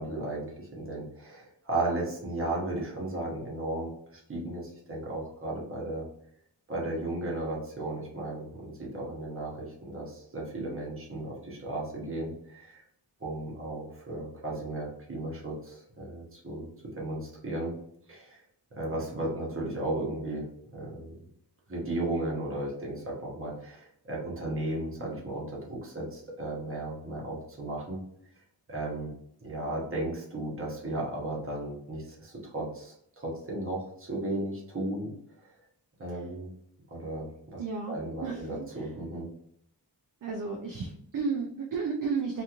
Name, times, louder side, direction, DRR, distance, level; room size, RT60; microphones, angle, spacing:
voice 1, 0.0-6.1 6.7-12.8 13.2-16.7 17.0-17.7 18.1-18.4 18.7-20.5 20.7-21.1 21.7-28.0 28.7-29.1 29.4-35.1 35.4-35.5 36.0-36.5 36.9-37.6 37.9-39.3, right 2 dB, 30° right, -3 dB, 0.9 m, -35 dB
voice 2, 37.6-37.9 38.2-38.9 40.2-42.4, right 5 dB, 50° right, 2 dB, 0.4 m, -33 dB
2.9 x 2.5 x 2.4 m, 0.70 s
wide cardioid pair, 160°, 42 cm